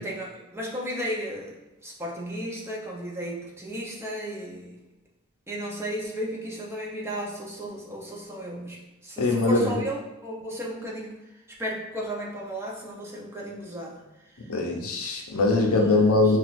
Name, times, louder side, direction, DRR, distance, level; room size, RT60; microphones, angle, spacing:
voice 1, 0.0-1.5 1.8-4.7 5.5-8.8 9.0-11.1 11.6-14.0 15.6-16.1, equal, 10° right, -3 dB, 0.6 m, -34 dB
voice 2, 9.2-9.7 14.4-16.4, left 3 dB, 70° left, 1 dB, 0.6 m, -22 dB
5.8 x 2.4 x 2.5 m, 0.99 s
head